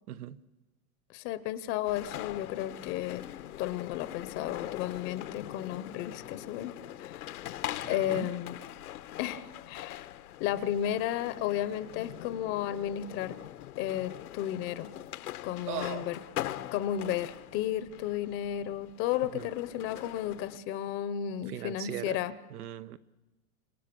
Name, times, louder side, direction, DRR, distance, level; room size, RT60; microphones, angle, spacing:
voice 1, 0.1-0.4 7.7-8.3 15.7-16.1 19.3-19.5 21.5-22.2 22.5-23.0, right 12 dB, 85° right, 13 dB, 1.2 m, -39 dB
voice 2, 1.1-3.2 3.6-7.3 7.9-8.6 9.2-10.1 10.4-13.4 13.8-14.9 15.4-16.2 16.7-22.3, left 11 dB, 30° left, 13 dB, 0.8 m, -33 dB
sound 1, 1.9-20.6, left 13 dB, 85° left, 1.3 m, -42 dB
30.0 x 26.5 x 6.8 m, 1.1 s
supercardioid pair, 160°, 43 cm